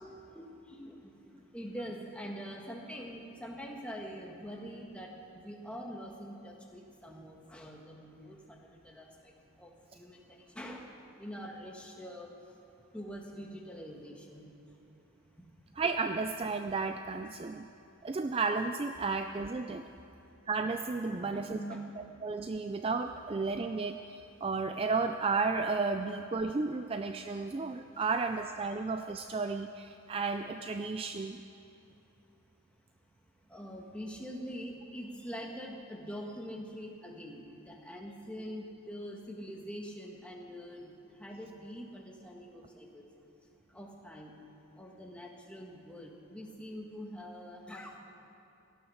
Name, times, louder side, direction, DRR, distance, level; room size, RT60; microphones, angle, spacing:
voice 1, 0.0-9.3 9.6-10.9 11.2-12.3 12.9-14.5 15.4-15.5 21.1-21.8 33.5-40.9 41.2-43.0 43.7-44.3 44.8-48.0, equal, 5° left, 0 dB, 1.6 m, -44 dB
voice 2, 15.8-17.7 18.0-19.9 20.5-21.6 22.0-31.4, right 4 dB, 25° right, 7 dB, 0.3 m, -33 dB
17.5 x 12.5 x 6.4 m, 2.8 s
head